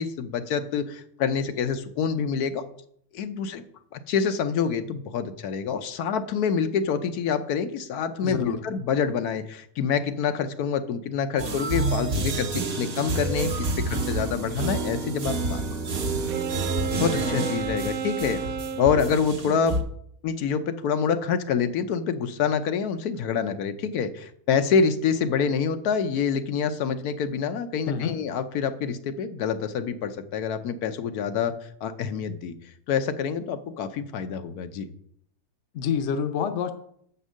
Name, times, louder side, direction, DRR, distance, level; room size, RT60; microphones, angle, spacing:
voice 1, 0.0-2.6 3.1-3.6 3.9-15.8 16.9-18.4 18.8-19.7 20.2-31.5 31.8-32.6 32.9-34.9, left 6 dB, 85° left, 9 dB, 1.3 m, -26 dB
voice 2, 8.2-8.6 27.9-28.2 35.7-36.7, left 7 dB, 60° left, 8 dB, 0.9 m, -27 dB
sound 1, 11.4-19.8, right 2 dB, 45° right, 0.9 m, -29 dB
Wind instrument woodwind instrument, 16.3-19.2, right 7 dB, 75° right, 1.0 m, -32 dB
7.3 x 5.4 x 6.2 m, 0.68 s
omnidirectional pair, 1.6 m